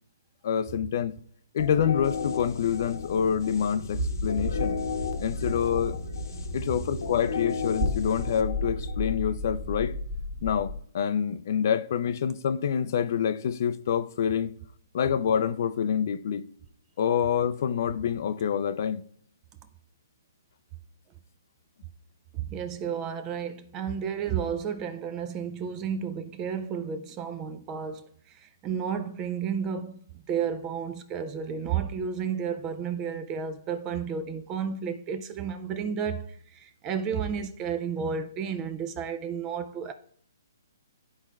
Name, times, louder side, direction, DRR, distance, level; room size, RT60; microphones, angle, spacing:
voice 1, 0.4-1.1 1.5-4.8 5.2-6.0 6.5-9.9 10.4-14.5 14.9-16.5 17.0-19.0, left 8 dB, 50° left, 0.4 m, -27 dB
sound 1, 1.6-9.2, left 5 dB, 80° left, 1.0 m, -34 dB
sound 2, 3.9-10.8, left 1 dB, 35° right, 1.4 m, -33 dB
voice 2, 22.3-30.0 30.3-39.9, right 7 dB, 20° right, 0.4 m, -32 dB
12.0 x 4.3 x 2.4 m
hypercardioid pair, 155°, 2 cm